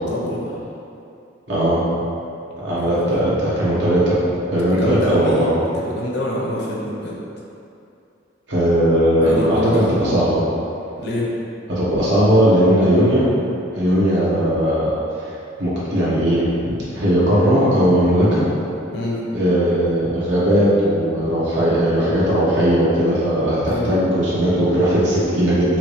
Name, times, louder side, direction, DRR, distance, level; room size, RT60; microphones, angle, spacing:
voice 1, 0.0-0.5 2.8-3.1 4.7-7.2 9.2-10.0 11.0-11.3 18.9-19.2 23.7-23.9, left 1 dB, 65° left, -4 dB, 0.9 m, -25 dB
voice 2, 1.5-1.8 2.6-4.2 4.5-5.6 8.5-10.4 11.7-13.2 13.7-15.0 15.6-18.4 19.3-25.8, equal, 70° right, -10 dB, 1.4 m, -18 dB
5.8 x 2.7 x 3.2 m, 2.7 s
head